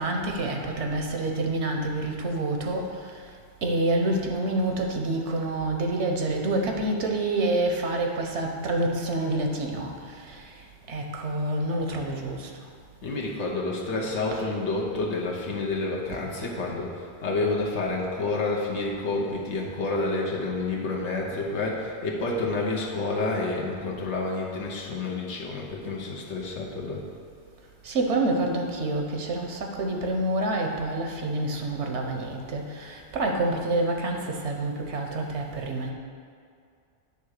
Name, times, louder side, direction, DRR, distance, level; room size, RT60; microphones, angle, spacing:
voice 1, 0.0-2.9 3.6-9.9 10.3-10.4 10.9-12.5 27.8-35.9, right 2 dB, 80° right, 2 dB, 1.2 m, -27 dB
voice 2, 13.0-27.0, left 3 dB, 85° left, -3 dB, 1.3 m, -29 dB
8.9 x 3.5 x 6.5 m, 2.3 s
omnidirectional pair, 1.1 m